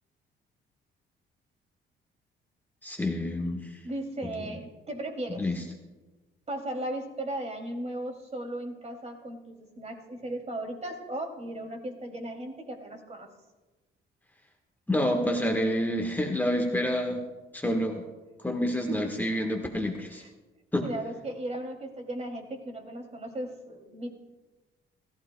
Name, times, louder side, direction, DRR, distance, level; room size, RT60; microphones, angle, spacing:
voice 1, 2.8-3.7 5.4-5.5 14.9-17.2 17.5-18.0 18.4-20.2 20.7-20.8, left 1 dB, 10° left, 2 dB, 1.4 m, -28 dB
voice 2, 3.8-5.5 6.5-13.3 18.7-19.5 20.1-20.3 20.8-24.1, right 1 dB, 35° right, 3 dB, 2.7 m, -36 dB
28.5 x 15.0 x 2.3 m, 1.2 s
cardioid pair, 90°, 20 cm